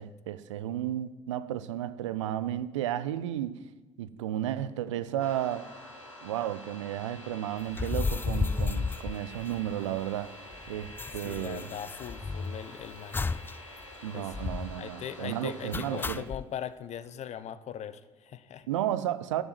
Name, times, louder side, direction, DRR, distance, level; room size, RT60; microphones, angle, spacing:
voice 1, 0.0-3.6 4.0-5.7 6.2-10.3 10.7-11.7 14.0-16.2 18.7-19.4, right 11 dB, 75° right, 14 dB, 0.6 m, -33 dB
sound 1, 5.2-16.2, left 1 dB, 90° left, 1.6 m, -48 dB
sound 2, 7.7-10.0 10.2-10.3 10.5-12.6 13.1-13.6 13.8-13.9 14.3-14.8 15.7-16.4, left 4 dB, 15° left, 0.3 m, -33 dB
voice 2, 11.2-13.2 14.1-14.4 14.8-18.7, left 9 dB, 45° left, 14 dB, 0.9 m, -40 dB
12.5 x 7.1 x 9.4 m, 1.2 s
figure-of-eight pair, 55°, 16 cm